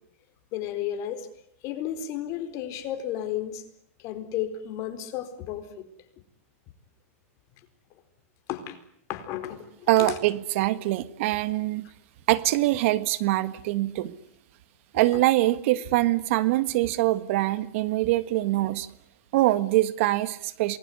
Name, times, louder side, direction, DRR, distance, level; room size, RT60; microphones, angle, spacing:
voice 1, 0.5-1.3 1.6-3.6 4.0-5.9 8.5-8.8 9.1-10.2 15.1-15.2, left 11 dB, 45° left, 9 dB, 4.4 m, -33 dB
voice 2, 9.9-11.9 12.3-14.1 14.9-18.9 19.3-20.8, right 17 dB, 60° right, 14 dB, 1.6 m, -24 dB
27.5 x 21.0 x 9.7 m, 0.71 s
hypercardioid pair, 125°, 8 cm